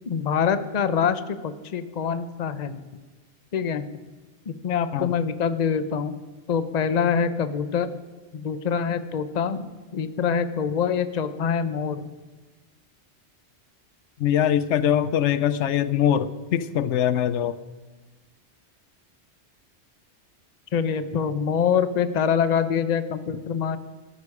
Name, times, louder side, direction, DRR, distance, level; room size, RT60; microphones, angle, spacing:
voice 1, 0.1-2.8 3.5-3.9 4.5-6.2 6.5-7.9 8.3-12.0 20.7-23.8, left 7 dB, 40° left, 12 dB, 0.8 m, -25 dB
voice 2, 14.2-17.6, left 10 dB, 90° left, 15 dB, 1.0 m, -22 dB
14.0 x 13.0 x 4.9 m, 1.3 s
omnidirectional pair, 1.2 m